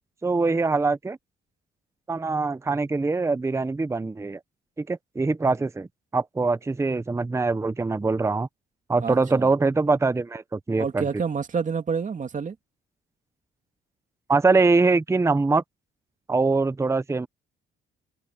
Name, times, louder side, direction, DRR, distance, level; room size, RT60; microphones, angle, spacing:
voice 1, 0.2-1.2 2.1-4.4 4.8-5.9 6.1-8.5 8.9-11.0 14.3-15.6 16.3-17.3, right 3 dB, 15° right, 0.6 m, -23 dB
voice 2, 9.0-9.5 10.8-12.6, right 6 dB, 40° right, 2.6 m, -28 dB
cardioid pair, 90°, 20 cm